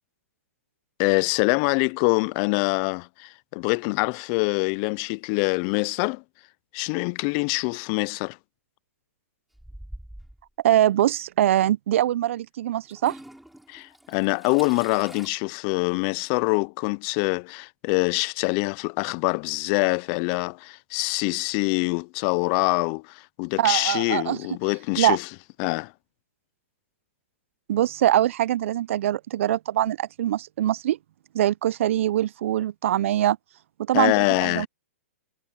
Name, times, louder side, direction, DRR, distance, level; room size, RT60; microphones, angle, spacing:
voice 1, 1.0-6.2 6.7-8.4 13.7-25.3 25.6-25.9 33.9-34.7, left 31 dB, 35° left, 0.3 m, -25 dB
Toilet flush / Trickle dribble, 9.5-10.5 11.5-11.6 12.9-15.3, right 1 dB, ahead, 7.1 m, -44 dB
voice 2, 10.6-13.2 23.6-24.4 25.0-25.2 27.7-31.0 31.3-33.4 33.8-34.7, right 12 dB, 60° right, 0.4 m, -23 dB
hypercardioid pair, 140°, 8 cm